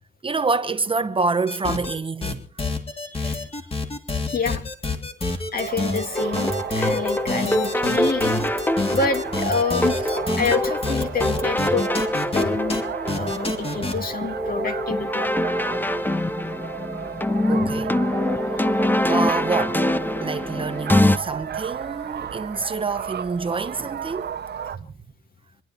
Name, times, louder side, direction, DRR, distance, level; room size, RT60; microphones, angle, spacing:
voice 1, 0.2-2.5 12.4-12.5 15.7-15.9 17.5-18.0 19.1-19.8 20.2-24.4 24.8-24.9, right 4 dB, 25° right, 1.0 m, -27 dB
sound 1, 1.5-1.9 2.2-12.4 12.7-12.8 13.1-13.9, left 3 dB, 30° left, 3.1 m, -27 dB
voice 2, 3.1-3.5 4.2-4.6 5.5-8.4 8.9-10.0 10.4-11.9 12.3-12.8 13.1-15.2 18.4-18.8, left 5 dB, 50° left, 2.4 m, -27 dB
sound 2, 5.6-24.8, right 8 dB, 55° right, 1.2 m, -34 dB
sound 3, 6.2-21.2, left 1 dB, 10° left, 0.6 m, -24 dB
26.5 x 10.5 x 4.3 m
cardioid pair, 90°, 20 cm